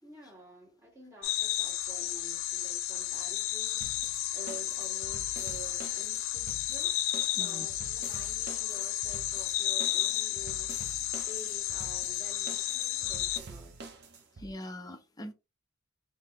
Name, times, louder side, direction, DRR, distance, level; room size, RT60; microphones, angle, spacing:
voice 1, 0.0-3.9 4.3-6.9 7.3-13.8, right 1 dB, 15° right, 1.7 m, -50 dB
Amazon jungle night crickets birds frogs, 1.2-13.4, left 13 dB, 65° left, 0.4 m, -32 dB
sound 1, 3.8-14.5, right 3 dB, 50° right, 0.7 m, -47 dB
voice 2, 7.4-7.7 14.4-15.3, equal, 20° left, 0.6 m, -42 dB
3.7 x 2.8 x 2.9 m
head